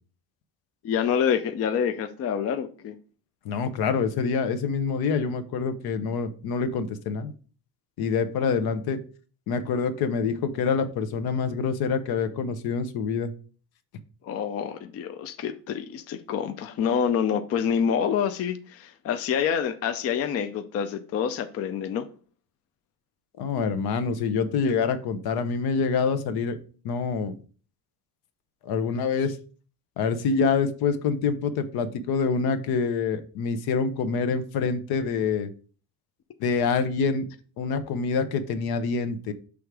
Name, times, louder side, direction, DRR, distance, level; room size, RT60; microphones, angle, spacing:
voice 1, 0.8-3.0 14.2-22.1, left 7 dB, 40° left, 0.4 m, -27 dB
voice 2, 3.4-7.3 8.0-9.0 9.5-13.3 23.4-26.6 26.8-27.3 28.6-29.3 30.0-35.5 36.4-37.3 37.6-39.3, left 5 dB, 70° left, 0.8 m, -26 dB
6.4 x 3.5 x 4.7 m
cardioid pair, 165°, 38 cm